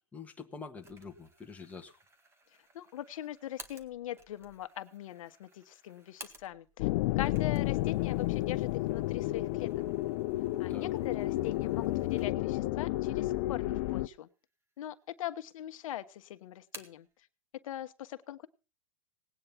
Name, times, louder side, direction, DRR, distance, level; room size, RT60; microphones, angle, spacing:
voice 1, 0.1-2.0 10.7-10.9, left 5 dB, 10° left, 1 dB, 1.7 m, -46 dB
sound 1, 0.8-6.8 7.1-12.6 13.0-13.1 14.0-14.6 14.9-15.7 16.0-17.1, right 2 dB, 15° right, 1.9 m, -55 dB
voice 2, 2.7-6.9 7.2-9.7 10.6-14.3 14.8-17.1 17.6-18.5, left 12 dB, 70° left, 9 dB, 1.3 m, -41 dB
sound 2, 6.8-14.1, left 18 dB, 50° left, 0.6 m, -31 dB
18.5 x 9.2 x 5.8 m, 0.34 s
hypercardioid pair, 140°, 18 cm